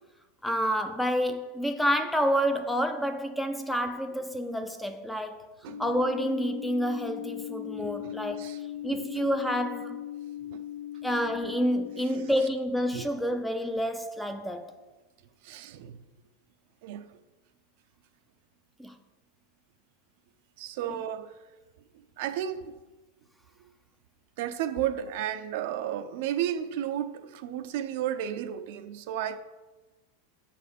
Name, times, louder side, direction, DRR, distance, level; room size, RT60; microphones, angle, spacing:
voice 1, 0.4-5.5 5.8-8.5 8.8-10.0 11.0-14.7 18.8-19.0, equal, ahead, 0.5 m, -29 dB
sound 1, 5.7-12.4, left 12 dB, 65° left, 0.8 m, -39 dB
voice 2, 7.8-8.6 8.9-9.0 10.5-10.6 12.9-13.0 15.4-16.0 16.8-17.1 20.6-21.4 22.2-22.7 24.4-29.4, right 10 dB, 55° right, 0.5 m, -33 dB
8.2 x 4.2 x 6.8 m
supercardioid pair, 165°, 0 cm